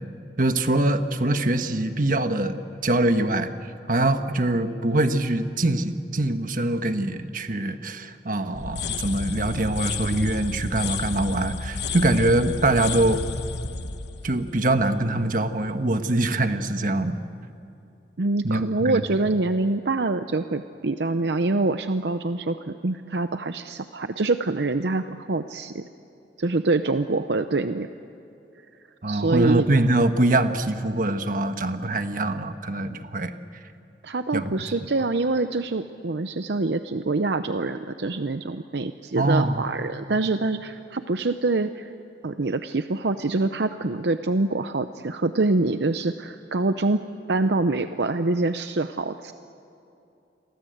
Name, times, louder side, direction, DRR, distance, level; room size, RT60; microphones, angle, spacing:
voice 1, 0.4-3.5 3.9-13.2 14.2-17.2 18.4-19.0 29.0-33.3 34.3-34.5 39.1-39.6, right 2 dB, 50° right, 8 dB, 1.4 m, -23 dB
sound 1, 8.5-15.4, left 4 dB, 75° left, 1.1 m, -32 dB
voice 2, 18.2-25.8 26.4-27.9 29.1-29.7 34.0-41.9 42.2-47.0 47.3-49.3, right 2 dB, 70° right, 9 dB, 0.7 m, -25 dB
29.0 x 23.0 x 8.0 m, 2.7 s
head